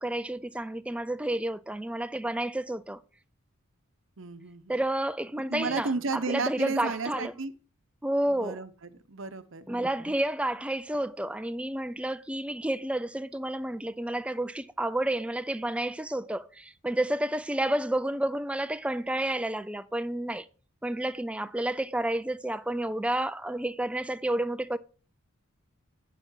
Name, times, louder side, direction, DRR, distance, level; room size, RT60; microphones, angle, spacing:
voice 1, 0.0-3.0 4.7-7.3 8.0-8.6 9.7-20.5 20.8-24.8, right 1 dB, 5° right, 0.4 m, -30 dB
voice 2, 4.2-4.8 5.5-7.5 8.3-9.7, right 3 dB, 60° right, 0.8 m, -33 dB
8.2 x 7.0 x 5.6 m
head